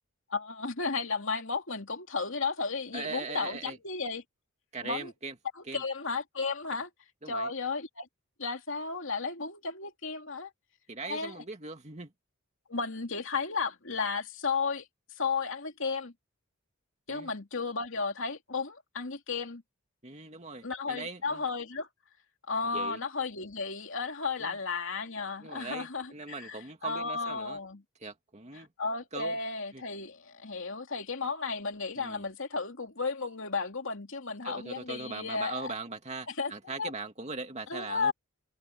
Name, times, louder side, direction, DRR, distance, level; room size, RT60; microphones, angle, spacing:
voice 1, 0.3-4.2 4.8-5.1 5.6-6.9 7.3-8.1 8.4-10.5 11.0-11.3 12.7-14.8 15.2-16.1 17.1-19.6 20.6-21.9 22.5-27.8 28.8-35.7 36.4-36.5 36.8-36.9 37.7-38.1, left 4 dB, 60° left, 3.0 m, -34 dB
voice 2, 2.9-3.8 4.7-5.3 5.7-5.8 7.2-7.5 10.9-12.1 17.1-17.3 20.0-21.4 22.7-23.0 24.4-24.6 25.4-27.6 28.0-28.7 29.1-29.4 29.7-29.8 31.9-32.2 34.4-38.1, right 3 dB, 30° right, 2.3 m, -40 dB
head